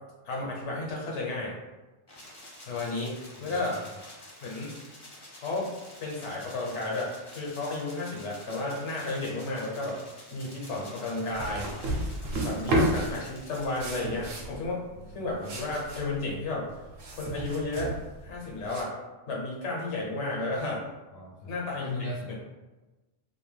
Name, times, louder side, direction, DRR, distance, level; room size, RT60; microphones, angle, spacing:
voice 1, 0.2-1.6 2.7-3.8 4.4-4.8 5.3-5.7 6.0-10.0 10.3-11.7 12.4-14.8 15.1-16.7 17.1-17.9 18.2-18.9 19.3-20.8 21.4-22.0 22.3-22.4, left 2 dB, 85° left, -3 dB, 1.1 m, -32 dB
sound 1, 2.1-13.8, left 1 dB, 30° left, 0.5 m, -49 dB
voice 2, 3.4-3.9 14.9-15.1 21.1-21.5 21.8-22.3, left 2 dB, 65° left, -5 dB, 0.7 m, -38 dB
sound 2, 11.3-18.8, right 1 dB, 60° right, 0.7 m, -32 dB
2.5 x 2.2 x 3.2 m, 1.1 s
omnidirectional pair, 1.1 m